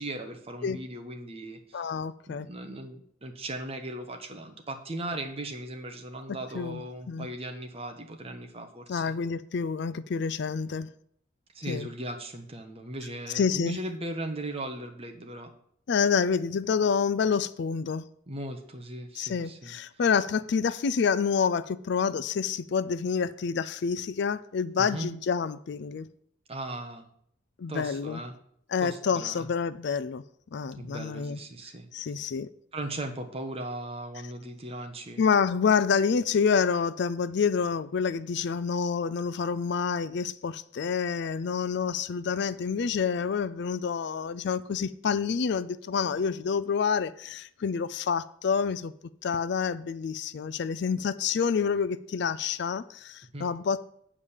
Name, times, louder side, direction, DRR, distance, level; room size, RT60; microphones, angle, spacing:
voice 1, 0.0-1.9 2.3-9.1 11.5-15.5 18.3-19.7 24.8-25.1 26.5-27.1 27.7-28.4 28.8-29.5 30.8-31.9 32.7-35.2 53.3-53.5, right 1 dB, 30° right, 1.1 m, -38 dB
voice 2, 1.7-2.5 6.5-6.8 7.1-7.3 8.9-10.9 11.7-11.9 13.3-13.8 15.9-18.0 19.2-26.1 27.6-28.2 28.7-30.2 30.5-31.4 31.9-32.5 35.2-48.9 49.2-53.8, left 6 dB, 60° left, 0.4 m, -28 dB
8.5 x 4.9 x 7.2 m
head